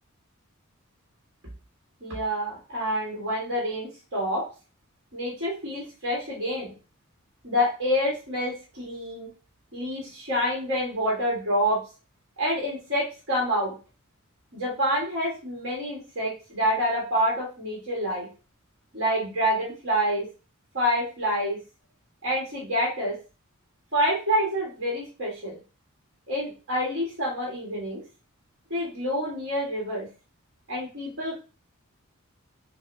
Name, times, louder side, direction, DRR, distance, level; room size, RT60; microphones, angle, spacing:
voice 1, 2.0-4.4 5.1-6.7 7.4-9.3 9.7-11.8 12.4-13.7 14.5-18.3 18.9-20.3 20.7-21.6 22.2-23.1 23.9-25.6 26.3-28.0 28.7-30.1 30.7-31.4, equal, 60° right, -4 dB, 1.5 m, -27 dB
6.1 x 2.2 x 2.6 m, 0.34 s
head